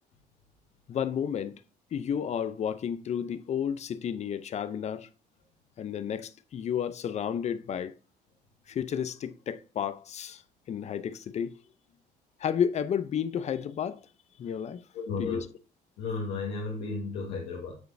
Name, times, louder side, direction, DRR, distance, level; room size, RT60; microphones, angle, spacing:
voice 1, 0.9-1.5 1.9-5.1 5.8-7.9 8.7-10.4 10.7-11.6 12.4-14.0 14.4-14.8 15.2-15.5, left 8 dB, 40° left, 0.6 m, -31 dB
voice 2, 14.9-15.4 16.0-17.7, left 4 dB, 80° left, 1.5 m, -33 dB
8.0 x 4.9 x 2.6 m
cardioid pair, 110°, 17 cm